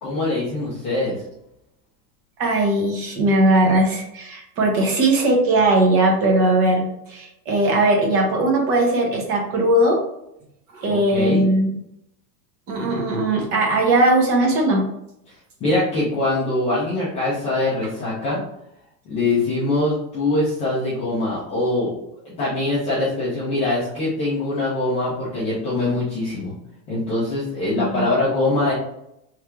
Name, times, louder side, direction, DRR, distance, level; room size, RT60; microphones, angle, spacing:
voice 1, 0.0-1.2 10.9-11.5 15.6-18.4 19.1-22.0 22.2-26.5 26.9-28.7, left 2 dB, 15° left, -9 dB, 0.3 m, -23 dB
voice 2, 2.4-10.0 10.7-11.8 12.7-14.9 27.7-28.1, right 2 dB, 30° right, 1 dB, 0.8 m, -19 dB
3.3 x 2.3 x 4.4 m, 0.80 s
supercardioid pair, 165°, 46 cm